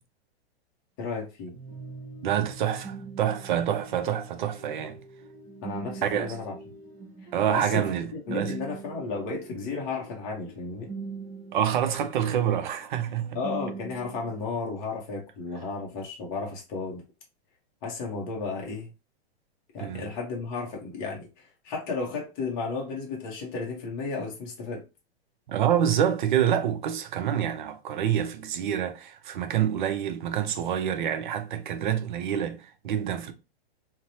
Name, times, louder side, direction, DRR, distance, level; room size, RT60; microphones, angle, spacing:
voice 1, 1.0-1.5 5.6-6.5 7.5-7.9 8.1-10.9 13.3-17.0 17.8-18.9 19.7-24.8, left 4 dB, 20° left, 0.6 m, -33 dB
sound 1, 1.5-14.4, right 4 dB, 25° right, 1.1 m, -42 dB
voice 2, 2.2-5.0 6.0-6.3 7.3-8.5 11.5-13.4 19.8-20.1 25.5-33.3, right 9 dB, 50° right, 0.4 m, -27 dB
2.9 x 2.0 x 2.7 m
hypercardioid pair, 165°, 32 cm